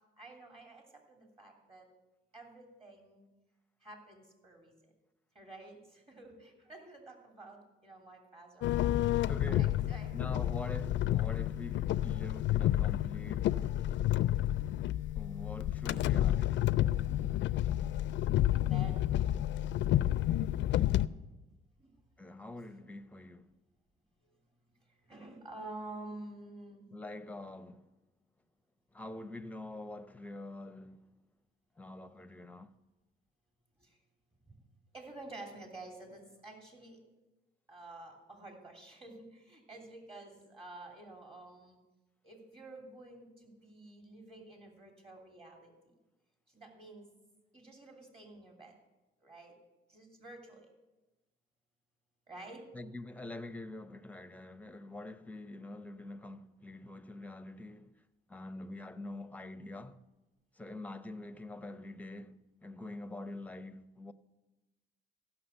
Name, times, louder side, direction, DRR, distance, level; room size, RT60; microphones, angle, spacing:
voice 1, 0.2-1.9 2.3-3.3 3.8-4.7 5.3-9.1 9.5-10.1 18.5-19.0 21.8-21.9 25.1-26.9 33.8-34.0 34.9-37.0 37.7-41.8 42.2-45.7 46.5-47.1 47.5-48.7 49.2-49.5 49.9-50.7 52.3-52.7, right 2 dB, 30° right, 2.9 m, -50 dB
sound 1, 8.6-21.1, left 13 dB, 70° left, 0.4 m, -30 dB
voice 2, 9.3-9.8 10.1-13.6 15.2-16.8 22.2-23.5 26.9-27.8 28.9-31.1 31.8-32.8 52.7-57.9 58.3-60.0 60.6-64.1, left 2 dB, 5° left, 0.7 m, -45 dB
15.5 x 6.0 x 7.9 m
cardioid pair, 90°, 20 cm